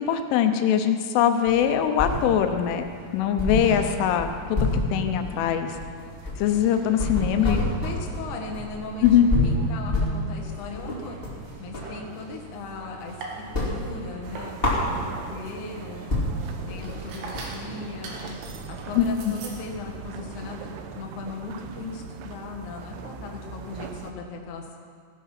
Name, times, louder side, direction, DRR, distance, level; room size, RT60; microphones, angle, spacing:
voice 1, 0.0-2.8 3.1-5.8 6.4-7.6 9.0-9.3 19.0-19.3, left 9 dB, 85° left, 7 dB, 3.3 m, -22 dB
sound 1, 1.4-2.6 2.9-3.0 3.4-12.0 12.3-13.1 13.4-15.4 15.8-15.9 16.1-20.2, left 2 dB, 25° left, 1.1 m, -28 dB
sound 2, 1.6-20.8, right 4 dB, 65° right, 3.5 m, -44 dB
voice 2, 7.4-9.1 9.4-11.2 11.6-13.2 13.6-14.6 14.9-16.0 16.7-18.4 18.7-20.7 20.9-24.8, left 4 dB, 60° left, 1 dB, 2.2 m, -38 dB
sound 3, 14.2-24.1, right 7 dB, 85° right, 3.3 m, -41 dB
17.0 x 10.5 x 5.9 m, 2.1 s
omnidirectional pair, 5.6 m